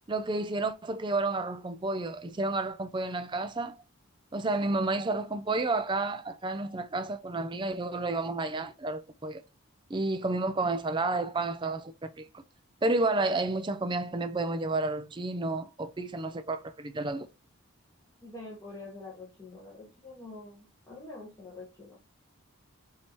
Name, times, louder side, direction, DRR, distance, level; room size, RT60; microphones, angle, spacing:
voice 1, 0.1-3.8 4.3-9.4 9.9-12.3 12.8-17.3, right 2 dB, 20° right, 0.4 m, -31 dB
voice 2, 18.2-22.0, left 2 dB, 10° left, 1.2 m, -46 dB
5.3 x 2.8 x 3.1 m
head